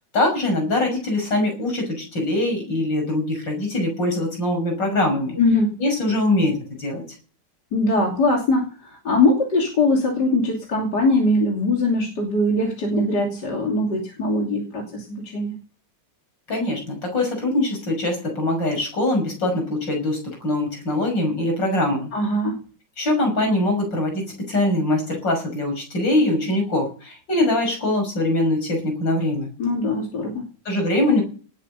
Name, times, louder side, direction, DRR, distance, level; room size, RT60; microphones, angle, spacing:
voice 1, 0.1-5.4 5.8-7.0 16.5-22.1 23.0-29.5 30.7-31.2, left 1 dB, 80° left, 3 dB, 6.9 m, -22 dB
voice 2, 5.4-5.8 7.7-15.6 22.1-22.6 29.6-30.5, left 2 dB, 65° left, 0 dB, 3.5 m, -21 dB
18.5 x 8.4 x 6.8 m, 0.39 s
omnidirectional pair, 2.0 m